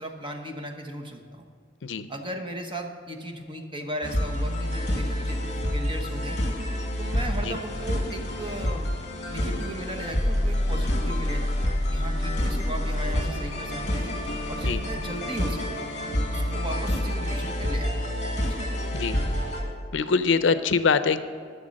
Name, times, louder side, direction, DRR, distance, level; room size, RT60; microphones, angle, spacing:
voice 1, 0.0-1.5 2.1-6.4 7.0-8.9 9.3-11.5 11.9-14.1 14.5-15.8 16.3-18.0 18.4-18.6, right 1 dB, 25° right, 3 dB, 1.0 m, -36 dB
sound 1, 4.0-19.6, left 1 dB, 40° left, 1.8 m, -28 dB
voice 2, 19.9-21.2, left 5 dB, 70° left, 12 dB, 0.5 m, -23 dB
11.0 x 6.9 x 6.5 m, 2.1 s
head